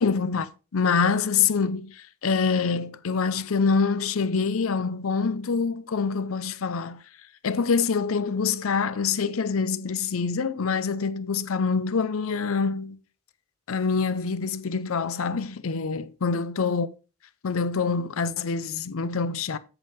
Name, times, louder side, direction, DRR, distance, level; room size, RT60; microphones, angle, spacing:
voice 1, 0.0-7.0 7.4-13.0 13.7-16.9 17.4-19.6, left 5 dB, 80° left, 0.6 m, -25 dB
8.0 x 7.2 x 3.6 m
head